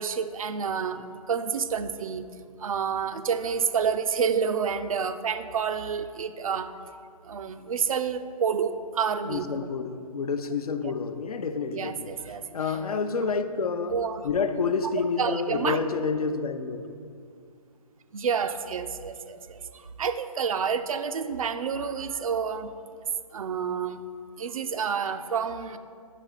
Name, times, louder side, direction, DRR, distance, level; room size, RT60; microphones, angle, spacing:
voice 1, 0.0-2.2 2.6-6.8 7.3-9.6 11.7-12.4 13.9-14.3 15.2-15.8 18.1-22.7 23.3-24.0 24.4-25.8, right 6 dB, 70° right, 11 dB, 0.4 m, -29 dB
voice 2, 9.3-14.0 14.2-16.8, left 5 dB, 80° left, 9 dB, 0.5 m, -29 dB
5.0 x 4.7 x 5.0 m, 2.3 s
hypercardioid pair, 145°, 19 cm